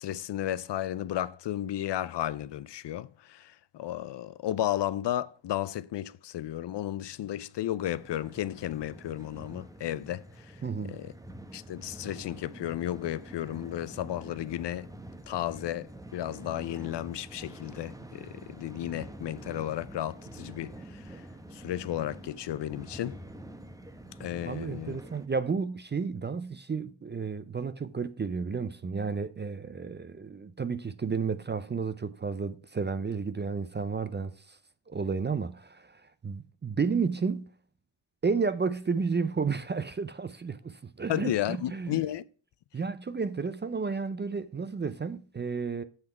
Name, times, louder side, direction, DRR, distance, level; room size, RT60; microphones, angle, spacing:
voice 1, 0.0-11.1 11.5-14.9 15.3-23.2 24.2-25.0 41.1-42.2, left 12 dB, 55° left, 0.5 m, -33 dB
sound 1, 7.8-25.3, right 1 dB, 5° right, 0.8 m, -47 dB
voice 2, 10.6-11.0 24.4-34.6 34.9-37.5 38.2-42.0 42.7-45.8, right 5 dB, 25° right, 0.4 m, -32 dB
8.0 x 3.6 x 6.5 m
cardioid pair, 75°, 50 cm